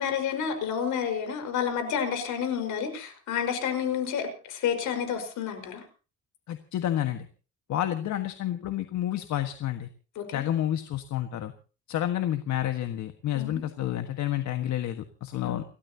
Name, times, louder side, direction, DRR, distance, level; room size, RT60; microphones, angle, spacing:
voice 1, 0.0-5.8 10.2-10.4 13.3-13.6 15.4-15.6, left 8 dB, 85° left, 6 dB, 5.2 m, -30 dB
voice 2, 6.5-7.3 7.7-9.9 10.3-11.5 11.9-15.6, left 12 dB, 70° left, 7 dB, 1.6 m, -29 dB
30.0 x 13.5 x 2.9 m, 0.36 s
cardioid pair, 145°, 30 cm